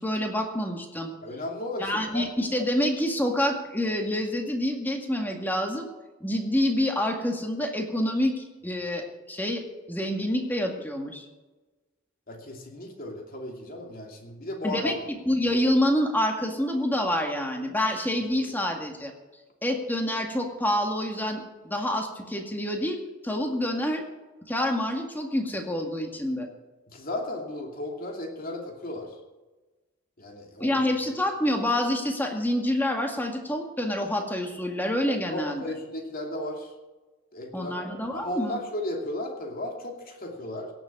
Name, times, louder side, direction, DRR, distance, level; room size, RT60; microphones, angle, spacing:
voice 1, 0.0-1.1 1.8-5.9 6.2-9.6 9.9-11.3 14.6-19.1 19.6-24.0 24.5-26.5 30.6-35.6 37.5-38.6, left 1 dB, 10° left, 2 dB, 2.0 m, -27 dB
voice 2, 1.2-2.3 12.3-14.9 26.9-29.2 30.2-30.8 35.1-36.7 37.3-37.7 38.1-40.7, left 1 dB, 45° left, 1 dB, 2.7 m, -35 dB
17.0 x 7.4 x 8.5 m, 1.2 s
head